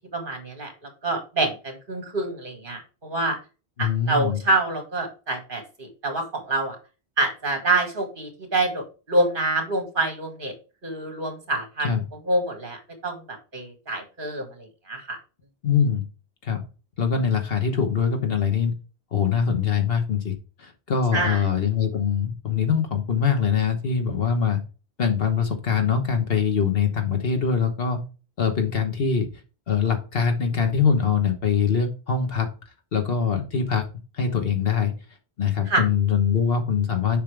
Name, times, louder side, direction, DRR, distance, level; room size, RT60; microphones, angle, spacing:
voice 1, 0.1-3.4 3.8-6.8 7.2-10.5 10.8-11.9 12.3-15.2 21.1-21.4 35.7-35.8, right 2 dB, 55° right, 4 dB, 2.0 m, -26 dB
voice 2, 3.8-4.4 11.8-12.0 15.6-16.1 16.4-16.6 17.0-18.7 19.1-20.3 20.6-24.6 25.0-28.0 28.4-29.3 29.7-32.5 32.9-33.8 34.1-34.9 35.4-37.2, left 6 dB, 65° left, 6 dB, 1.4 m, -23 dB
7.0 x 5.5 x 3.3 m, 0.33 s
omnidirectional pair, 1.1 m